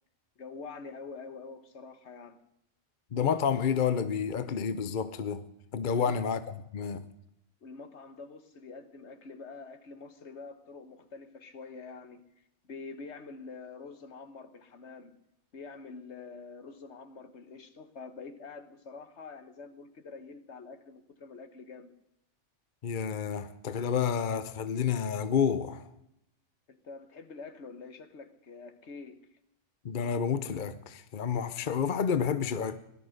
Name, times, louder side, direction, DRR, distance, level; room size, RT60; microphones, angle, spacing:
voice 1, 0.4-2.4 5.9-6.2 7.6-12.2 12.6-15.1 15.5-21.9 26.7-29.3, left 4 dB, 65° left, 1.5 m, -46 dB
voice 2, 3.1-5.5 5.7-6.4 6.7-7.0 22.8-25.8 29.8-32.8, left 7 dB, 45° left, 0.8 m, -29 dB
18.0 x 12.0 x 6.5 m
omnidirectional pair, 1.3 m